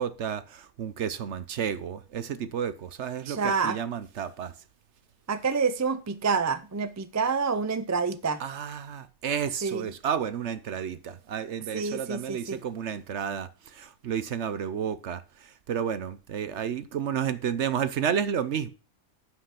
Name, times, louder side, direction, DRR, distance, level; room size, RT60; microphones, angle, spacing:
voice 1, 0.0-4.5 8.4-18.7, right 8 dB, 60° right, 0.9 m, -31 dB
voice 2, 3.3-3.8 5.3-8.4 9.6-9.9 11.7-12.6, right 5 dB, 25° right, 0.3 m, -28 dB
9.8 x 6.0 x 5.8 m
omnidirectional pair, 1.5 m